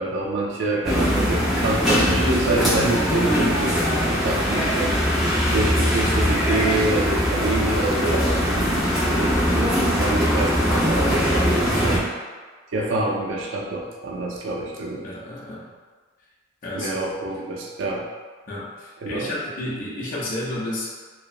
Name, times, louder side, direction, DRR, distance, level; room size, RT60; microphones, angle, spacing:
voice 1, 0.0-5.3 5.5-8.7 9.1-12.0 12.7-15.1 16.7-18.0 19.0-19.3, right 2 dB, 75° right, -2 dB, 0.4 m, -26 dB
sound 1, 0.8-12.0, equal, 5° right, 0.6 m, -21 dB
voice 2, 3.7-4.3 11.7-11.9 15.0-15.7 16.6-17.1 18.5-20.9, left 1 dB, 45° left, -7 dB, 0.5 m, -32 dB
2.8 x 2.0 x 2.4 m, 1.4 s
head